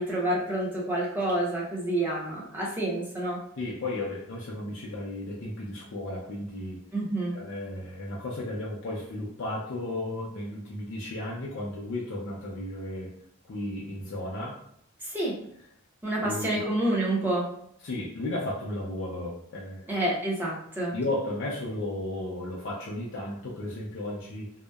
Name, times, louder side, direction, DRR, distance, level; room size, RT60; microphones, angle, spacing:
voice 1, 0.0-3.4 6.9-7.3 15.0-15.4 16.0-17.5 19.9-20.9, right 1 dB, 10° right, -5 dB, 0.6 m, -28 dB
voice 2, 3.6-6.8 7.3-13.2 13.4-14.6 16.2-16.7 17.8-19.9 20.9-24.5, left 1 dB, 60° left, -5 dB, 0.5 m, -34 dB
2.7 x 2.0 x 2.2 m, 0.69 s
head